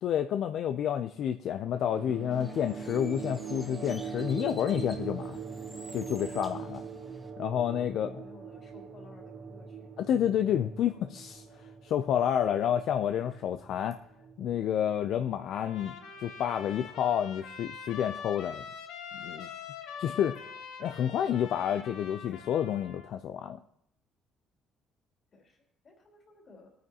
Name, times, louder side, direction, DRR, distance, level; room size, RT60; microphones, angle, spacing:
voice 1, 0.0-5.4 5.9-6.9 7.4-8.2 10.1-11.4 11.8-14.0 14.4-18.6 19.1-19.5 20.0-20.5 20.8-23.6, left 9 dB, 65° left, 8 dB, 0.4 m, -29 dB
sound 1, 1.7-16.6, right 6 dB, 65° right, 1.8 m, -42 dB
Bird, 2.3-7.3, equal, 5° left, 1.2 m, -52 dB
voice 2, 8.1-9.9 25.3-26.7, left 3 dB, 35° left, 0 dB, 2.9 m, -55 dB
Trumpet, 15.5-23.1, left 6 dB, 85° left, 1.2 m, -44 dB
20.5 x 9.2 x 2.9 m, 0.75 s
cardioid pair, 145°, 0 cm